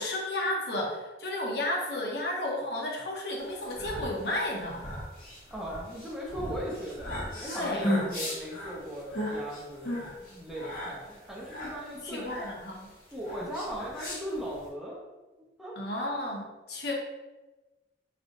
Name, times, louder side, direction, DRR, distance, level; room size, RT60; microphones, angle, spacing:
voice 1, 0.0-4.9 7.5-7.9 12.0-12.9 15.8-16.9, left 1 dB, 65° left, -1 dB, 0.8 m, -32 dB
sound 1, 3.5-14.7, left 1 dB, 50° left, 1.2 m, -36 dB
voice 2, 5.5-12.3 13.1-15.0 15.6-15.8, equal, 5° right, -5 dB, 0.7 m, -38 dB
3.4 x 2.6 x 3.7 m, 1.2 s
head